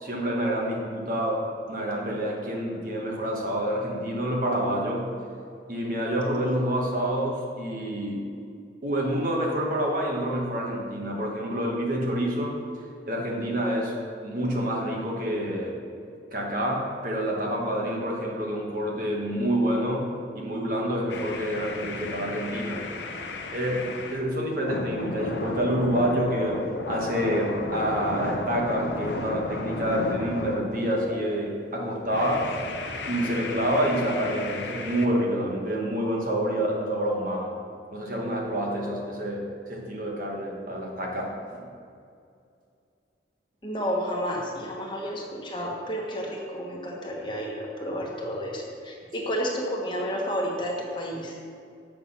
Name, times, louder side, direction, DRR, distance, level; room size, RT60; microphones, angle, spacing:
voice 1, 0.0-5.1 5.7-8.2 8.8-12.6 13.1-15.8 16.3-22.9 23.5-23.9 24.1-32.5 33.1-37.6 37.9-41.6 49.2-49.3, equal, 50° right, -1 dB, 1.3 m, -28 dB
sound 1, 21.1-24.3 24.7-31.3 32.1-35.1, left 2 dB, 75° left, 0.7 m, -34 dB
voice 2, 43.6-51.3, equal, 25° left, -2 dB, 1.2 m, -31 dB
7.4 x 5.8 x 5.6 m, 2.4 s
head